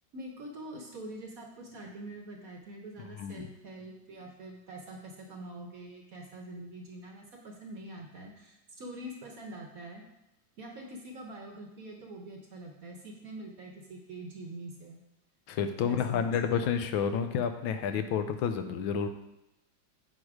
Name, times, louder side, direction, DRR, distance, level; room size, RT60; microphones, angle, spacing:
voice 1, 0.1-10.0 10.6-15.0 15.8-16.3, right 1 dB, 55° right, 1 dB, 1.1 m, -45 dB
voice 2, 15.5-19.1, left 7 dB, 80° left, 8 dB, 1.4 m, -30 dB
8.3 x 4.9 x 4.8 m, 0.90 s
omnidirectional pair, 2.2 m